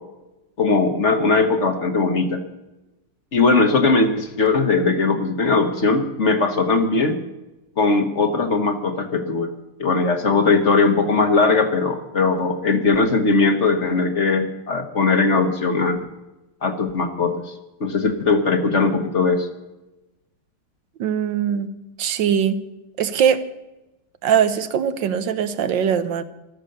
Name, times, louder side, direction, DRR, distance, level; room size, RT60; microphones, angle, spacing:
voice 1, 0.6-2.4 3.3-7.2 7.8-9.5 9.8-16.0 16.6-17.5 17.8-19.5, left 3 dB, 45° left, 7 dB, 1.4 m, -19 dB
voice 2, 21.0-21.7 22.0-22.6 23.0-23.4 24.2-26.2, right 8 dB, 85° right, 12 dB, 1.7 m, -21 dB
14.5 x 13.0 x 6.7 m, 1.0 s
omnidirectional pair, 1.9 m